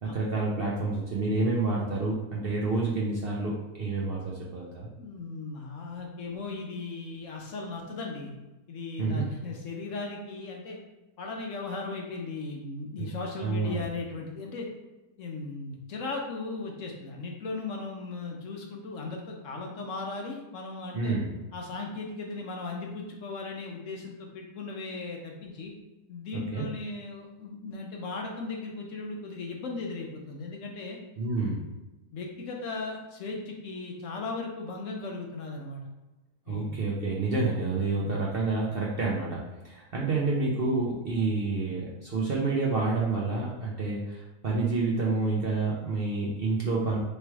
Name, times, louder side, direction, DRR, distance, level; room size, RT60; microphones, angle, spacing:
voice 1, 0.0-4.9 9.0-9.2 13.0-13.1 13.4-13.8 20.9-21.3 26.3-26.6 31.2-31.6 36.5-39.4 39.6-47.0, right 3 dB, 55° right, -4 dB, 0.7 m, -28 dB
voice 2, 5.0-8.3 8.7-10.8 11.2-14.7 15.2-21.2 21.5-25.7 26.1-31.0 31.4-31.6 32.1-35.8 36.5-36.8 38.0-38.2, left 3 dB, 65° left, 1 dB, 1.0 m, -37 dB
3.3 x 3.1 x 4.5 m, 1.0 s
omnidirectional pair, 1.6 m